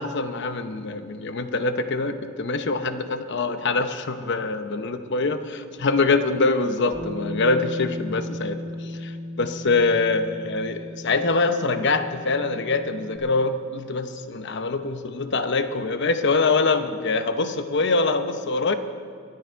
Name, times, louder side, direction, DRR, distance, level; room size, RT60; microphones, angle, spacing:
voice 1, 0.0-3.0 3.3-8.6 8.8-9.1 9.4-18.7, left 3 dB, 60° left, 9 dB, 0.8 m, -24 dB
Bass guitar, 6.9-13.2, left 1 dB, 10° right, 2.4 m, -36 dB
23.5 x 9.5 x 4.6 m, 2.3 s
head